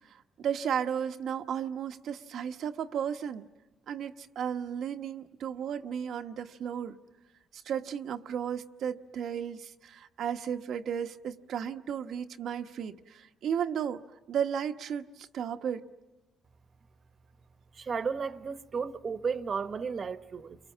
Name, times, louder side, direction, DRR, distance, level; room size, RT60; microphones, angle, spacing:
voice 1, 0.1-3.5 3.9-7.0 7.5-14.0 14.3-15.8, right 8 dB, 70° right, 1.2 m, -34 dB
voice 2, 17.7-20.6, right 5 dB, 45° right, 1.2 m, -33 dB
30.0 x 23.5 x 7.4 m
cardioid pair, 90°, 0 cm